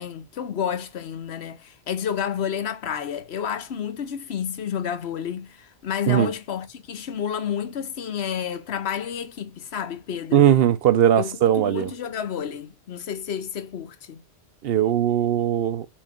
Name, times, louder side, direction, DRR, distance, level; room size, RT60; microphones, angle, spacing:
voice 1, 0.0-10.5 11.2-14.2, left 8 dB, 70° left, 1.2 m, -30 dB
voice 2, 10.3-11.9 14.6-15.9, right 10 dB, 65° right, 0.8 m, -19 dB
6.0 x 4.7 x 6.6 m
omnidirectional pair, 1.1 m